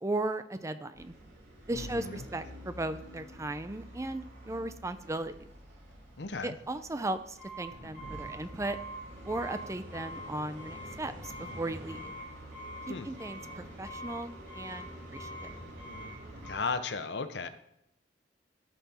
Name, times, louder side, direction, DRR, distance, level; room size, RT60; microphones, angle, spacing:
voice 1, 0.0-1.1 1.7-5.4 6.4-8.8 9.3-12.1 12.9-15.4, right 2 dB, 15° right, 11 dB, 0.5 m, -36 dB
sound 1, 0.9-16.5, equal, 85° right, 3.6 m, -45 dB
voice 2, 1.7-2.2 6.2-6.6 12.9-13.1 16.4-17.5, left 4 dB, 70° left, 10 dB, 0.8 m, -35 dB
14.0 x 5.8 x 4.3 m, 0.80 s
head